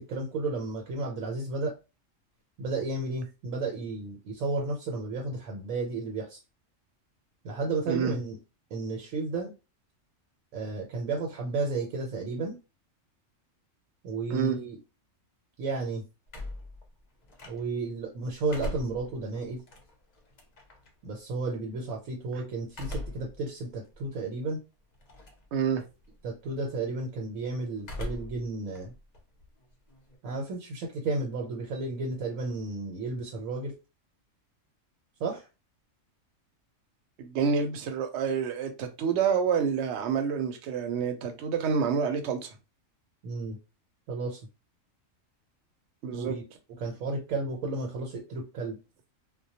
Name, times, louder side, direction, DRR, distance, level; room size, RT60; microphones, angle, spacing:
voice 1, 0.0-1.8 2.6-6.4 7.4-8.4 8.7-9.5 10.5-12.6 14.0-14.8 15.6-16.0 17.5-19.6 21.0-24.6 26.2-28.9 30.2-33.7 35.2-35.5 43.2-43.6 44.1-44.4 46.1-46.4 46.8-48.8, right 3 dB, 85° right, 1.0 m, -33 dB
sound 1, 16.3-17.9 18.3-20.9 22.7-23.4 23.9-24.0 25.0-25.5 25.8-26.2 27.8-28.5 28.7-30.2, left 1 dB, 50° left, 0.5 m, -40 dB
voice 2, 25.5-25.8 37.2-42.5 46.0-46.3, right 6 dB, 65° right, 0.8 m, -28 dB
2.2 x 2.1 x 2.7 m
omnidirectional pair, 1.4 m